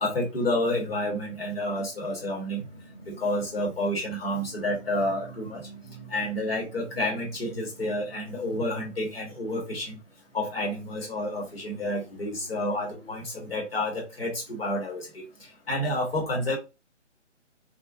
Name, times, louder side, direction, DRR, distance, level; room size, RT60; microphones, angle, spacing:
voice 1, 0.0-2.6 3.2-5.6 6.1-10.0 10.3-15.2 15.7-16.6, left 1 dB, 50° left, 1.2 m, -29 dB
sound 1, 2.4-13.2, right 3 dB, 5° right, 0.6 m, -49 dB
2.6 x 2.4 x 2.4 m
figure-of-eight pair, 150°, 37 cm